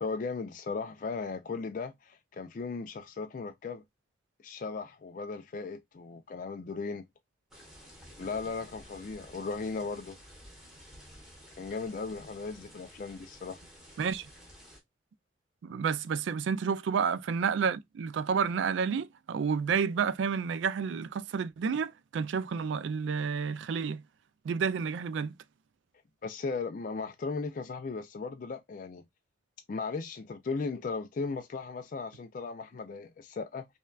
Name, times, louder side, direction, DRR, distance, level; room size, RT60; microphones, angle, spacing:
voice 1, 0.0-3.8 4.4-7.1 8.2-10.2 11.6-13.6 26.2-29.1 29.7-33.7, left 4 dB, 45° left, 0.3 m, -37 dB
sound 1, 7.5-14.8, equal, ahead, 1.2 m, -52 dB
voice 2, 15.6-24.0 24.4-25.3, right 6 dB, 80° right, 0.3 m, -30 dB
5.4 x 2.2 x 2.3 m
head